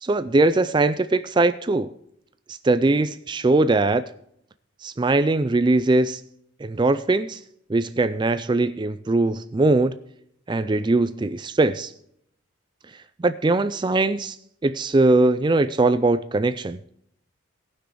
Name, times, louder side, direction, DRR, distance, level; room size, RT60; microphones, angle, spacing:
voice 1, 0.0-1.9 2.5-4.1 4.8-6.2 6.6-7.4 7.7-10.0 10.5-11.9 13.2-14.4 14.6-16.8, right 2 dB, 20° right, 13 dB, 0.3 m, -21 dB
18.0 x 6.2 x 4.7 m, 0.71 s
head